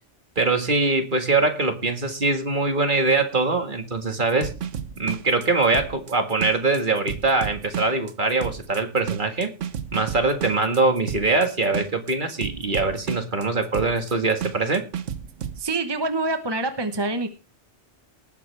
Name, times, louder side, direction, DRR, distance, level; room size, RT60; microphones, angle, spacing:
voice 1, 0.4-4.5 5.0-9.5 9.9-14.9, right 3 dB, 45° right, 6 dB, 2.0 m, -23 dB
sound 1, 4.3-15.6, right 8 dB, 80° right, 1.3 m, -32 dB
voice 2, 15.6-17.3, right 2 dB, 20° right, 8 dB, 1.1 m, -26 dB
19.0 x 9.5 x 3.4 m, 0.34 s
omnidirectional pair, 1.2 m